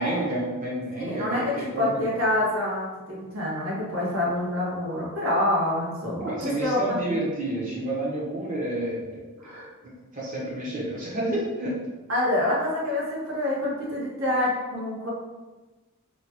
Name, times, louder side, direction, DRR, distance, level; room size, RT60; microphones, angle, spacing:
voice 1, 0.0-2.1 6.2-11.8, right 1 dB, 35° right, -5 dB, 1.0 m, -30 dB
voice 2, 1.0-6.8 7.1-7.2 9.4-9.6 12.1-15.1, left 1 dB, 65° right, -5 dB, 1.2 m, -27 dB
3.1 x 2.3 x 4.2 m, 1.2 s
head